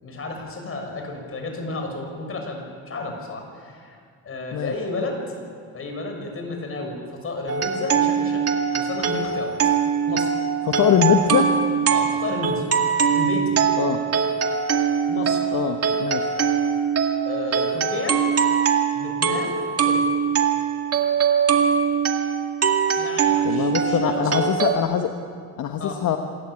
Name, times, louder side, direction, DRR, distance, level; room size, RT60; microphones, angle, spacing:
voice 1, 0.0-4.0 4.2-5.2 5.7-8.4 8.7-9.5 10.1-10.3 11.9-12.6 12.9-13.6 15.1-15.5 17.2-18.2 18.9-20.1 23.0-24.4 25.8-26.0, left 3 dB, 45° left, 3 dB, 6.3 m, -32 dB
sound 1, 7.5-24.8, right 7 dB, 50° right, 2.2 m, -22 dB
voice 2, 10.6-11.5 13.8-14.0 15.5-16.2 23.4-25.1 25.6-26.2, left 9 dB, 70° left, 5 dB, 1.3 m, -22 dB
26.5 x 13.5 x 9.8 m, 2.1 s
cardioid pair, 90°, 30 cm